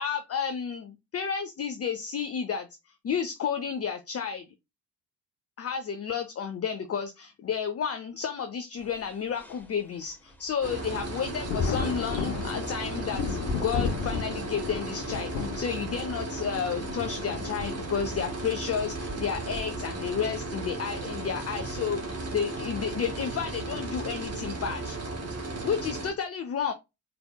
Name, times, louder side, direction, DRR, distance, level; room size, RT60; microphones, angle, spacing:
voice 1, 0.0-2.7 3.0-4.5 5.6-25.0 25.6-26.7, left 7 dB, 30° left, 0.6 m, -31 dB
sound 1, 8.8-24.7, equal, 5° left, 1.3 m, -51 dB
sound 2, 10.6-26.1, right 2 dB, 30° right, 1.6 m, -35 dB
Thunder, 11.4-18.5 19.5-19.6 21.1-21.3 21.7-21.8 23.7-24.0 24.7-25.0, left 5 dB, 75° left, 0.8 m, -34 dB
4.8 x 3.4 x 2.3 m
figure-of-eight pair, 40°, 49 cm